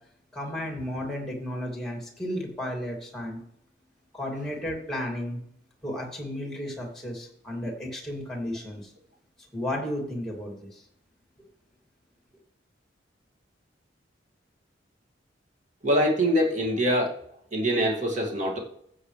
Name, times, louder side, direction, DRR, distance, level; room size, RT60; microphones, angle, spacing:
voice 1, 0.3-3.4 4.1-5.4 5.8-8.9 9.5-10.8, left 1 dB, ahead, 0 dB, 2.6 m, -33 dB
voice 2, 15.8-17.2 17.5-18.6, equal, 40° right, -1 dB, 2.4 m, -24 dB
15.0 x 7.6 x 3.3 m, 0.70 s
head